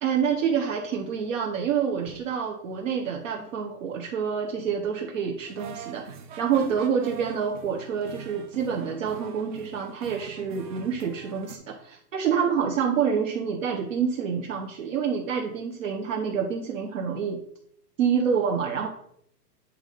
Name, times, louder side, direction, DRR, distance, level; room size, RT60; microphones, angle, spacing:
voice 1, 0.0-17.4 18.0-18.9, right 7 dB, 50° right, 1 dB, 1.2 m, -27 dB
sound 1, 5.5-11.6, right 6 dB, 30° right, 0.9 m, -43 dB
8.5 x 3.8 x 5.4 m, 0.68 s
hypercardioid pair, 165°, 48 cm